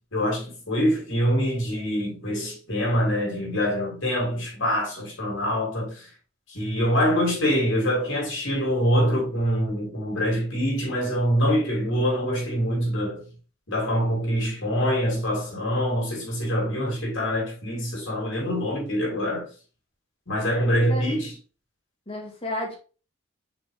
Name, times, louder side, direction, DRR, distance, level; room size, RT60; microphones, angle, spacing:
voice 1, 0.1-6.1 6.5-13.2 13.7-19.5 20.3-21.3, equal, 65° left, 3.5 m, -25 dB
voice 2, 20.8-21.2 22.1-22.8, equal, 25° left, 1.9 m, -32 dB
6.1 x 4.4 x 3.5 m
head